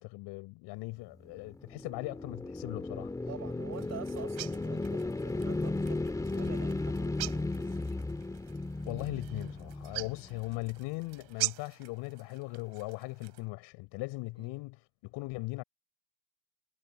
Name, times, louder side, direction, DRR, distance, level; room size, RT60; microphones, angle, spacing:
voice 1, 0.0-3.1 8.8-15.6, left 24 dB, 55° left, 6.4 m, -39 dB
sound 1, 1.3-10.6, left 2 dB, 5° left, 1.8 m, -35 dB
voice 2, 3.3-6.0 6.3-8.0 14.4-14.5, right 11 dB, 35° right, 5.6 m, -47 dB
sound 2, 3.7-13.5, right 22 dB, 55° right, 2.9 m, -43 dB
supercardioid pair, 125°, 49 cm